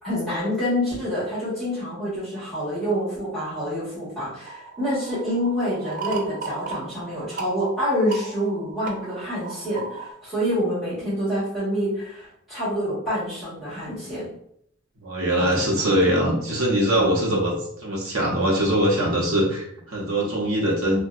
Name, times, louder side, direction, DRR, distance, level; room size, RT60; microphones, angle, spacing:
voice 1, 0.0-14.3 15.3-15.7 17.0-17.3, equal, ahead, -13 dB, 1.2 m, -27 dB
sound 1, 4.4-10.1, right 4 dB, 40° right, 0.3 m, -37 dB
voice 2, 15.0-21.0, equal, 85° right, -2 dB, 0.8 m, -22 dB
2.6 x 2.1 x 2.4 m, 0.69 s
head